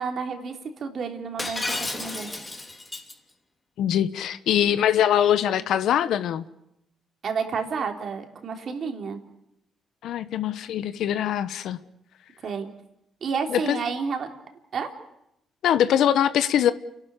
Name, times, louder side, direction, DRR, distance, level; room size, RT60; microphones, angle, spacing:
voice 1, 0.0-2.3 7.2-9.2 12.4-12.7 13.2-14.3 14.7-14.9, right 5 dB, 55° right, 4 dB, 3.5 m, -30 dB
Shatter, 1.4-3.1, left 2 dB, 20° left, 3.2 m, -32 dB
voice 2, 3.8-6.5 10.0-11.8 13.5-13.8 15.6-16.7, left 10 dB, 75° left, 13 dB, 1.1 m, -22 dB
30.0 x 12.0 x 10.0 m, 0.81 s
cardioid pair, 90°, 0 cm